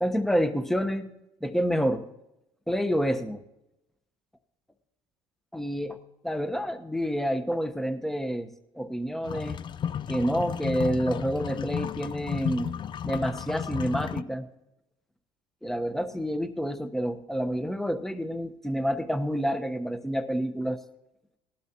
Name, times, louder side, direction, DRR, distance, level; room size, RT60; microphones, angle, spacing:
voice 1, 0.0-1.1 1.4-2.1 2.7-3.4 5.5-6.0 6.2-8.5 8.7-9.6 10.1-12.7 13.0-14.5 15.6-20.8, equal, ahead, 9 dB, 1.1 m, -28 dB
sound 1, 9.2-14.2, left 8 dB, 40° left, 0.4 m, -33 dB
18.5 x 12.0 x 2.9 m, 0.89 s
hypercardioid pair, 70°, 12 cm